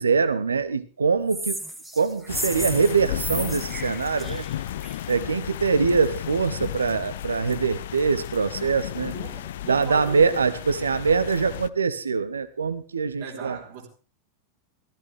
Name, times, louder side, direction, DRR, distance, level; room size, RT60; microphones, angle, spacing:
voice 1, 0.0-1.6 1.9-4.4 5.1-9.1 9.7-13.6, right 5 dB, 75° right, 0.8 m, -23 dB
sound 1, 1.3-5.1, right 1 dB, 5° right, 1.6 m, -34 dB
sound 2, 2.3-11.7, left 12 dB, 55° left, 0.5 m, -34 dB
voice 2, 9.1-10.4 13.2-13.9, right 6 dB, 55° right, 4.9 m, -38 dB
15.0 x 14.0 x 3.5 m
figure-of-eight pair, 90°, 0 cm